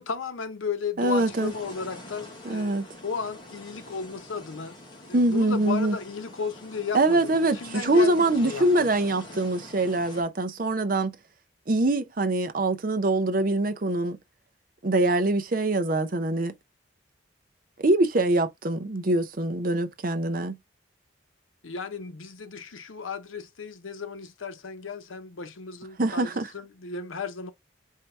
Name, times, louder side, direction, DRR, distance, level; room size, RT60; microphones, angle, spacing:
voice 1, 0.0-4.7 5.1-8.7 21.6-27.5, left 5 dB, 85° left, 0.8 m, -35 dB
sound 1, 1.0-10.2, left 1 dB, 25° left, 1.3 m, -45 dB
voice 2, 1.0-1.5 2.4-2.8 5.1-6.0 6.9-11.2 11.7-14.2 14.8-16.5 17.8-20.6 26.0-26.5, right 2 dB, 45° right, 0.6 m, -24 dB
4.6 x 2.8 x 3.2 m
head